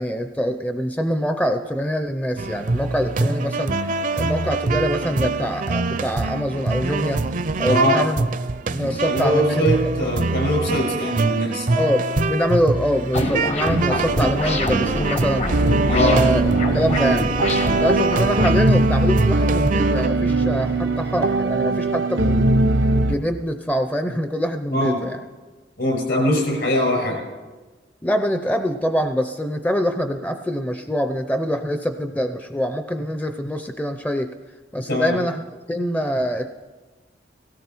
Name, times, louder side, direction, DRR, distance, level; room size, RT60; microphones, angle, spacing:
voice 1, 0.0-7.2 7.6-8.3 8.7-9.7 11.8-15.6 15.9-17.3 17.8-22.7 23.0-25.2 28.0-34.3 34.7-35.4 35.7-36.5, equal, 10° left, 7 dB, 0.5 m, -24 dB
sound 1, 2.4-20.1, right 3 dB, 45° right, 0.5 m, -24 dB
voice 2, 7.6-8.0 8.8-11.7 15.9-16.2 24.7-25.0 25.8-27.2 34.9-35.2, equal, 70° left, 1 dB, 6.0 m, -22 dB
sound 2, 13.1-18.5, left 2 dB, 35° left, 0.8 m, -27 dB
sound 3, 15.5-23.1, right 2 dB, 75° right, 0.8 m, -20 dB
18.0 x 17.0 x 4.5 m, 1.3 s
head